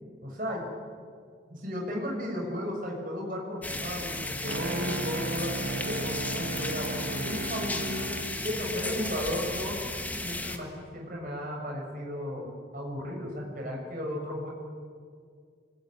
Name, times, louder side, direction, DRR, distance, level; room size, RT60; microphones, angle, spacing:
voice 1, 0.2-0.7 1.5-8.1 8.4-9.8 10.2-12.5 12.7-14.5, left 1 dB, 50° right, -1 dB, 6.4 m, -34 dB
sound 1, 3.6-10.6, left 2 dB, 10° left, 1.6 m, -35 dB
sound 2, 4.5-8.4, right 3 dB, 65° right, 1.3 m, -35 dB
28.5 x 21.0 x 9.9 m, 2.1 s
head